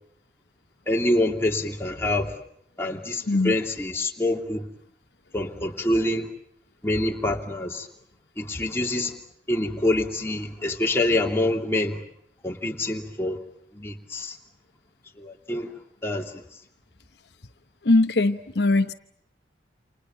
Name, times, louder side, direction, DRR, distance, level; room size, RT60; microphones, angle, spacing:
voice 1, 0.9-2.3 2.8-4.7 5.3-6.3 6.8-7.9 8.4-9.2 9.5-12.0 12.4-13.4 13.7-14.4 15.2-15.7 16.0-16.3, left 1 dB, 15° left, 2.8 m, -26 dB
voice 2, 3.3-3.6 17.8-18.9, left 2 dB, 75° left, 1.1 m, -21 dB
29.0 x 28.5 x 7.3 m
head